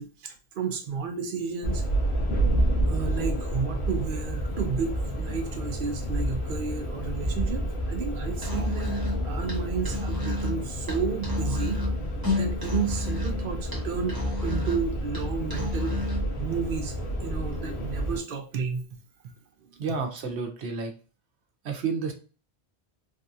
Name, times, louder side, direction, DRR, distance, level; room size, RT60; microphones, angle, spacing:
voice 1, 0.0-1.8 2.9-9.0 9.2-11.8 12.3-16.1 16.4-17.0 17.2-18.9, right 6 dB, 60° right, 6 dB, 0.7 m, -32 dB
sound 1, 1.6-18.2, right 1 dB, 75° left, 1.0 m, -30 dB
Musical instrument, 8.3-16.3, left 1 dB, 20° right, 1.0 m, -31 dB
voice 2, 19.8-20.9 21.6-22.1, right 5 dB, 90° right, 4 dB, 0.9 m, -30 dB
3.4 x 2.3 x 2.6 m, 0.36 s
omnidirectional pair, 1.1 m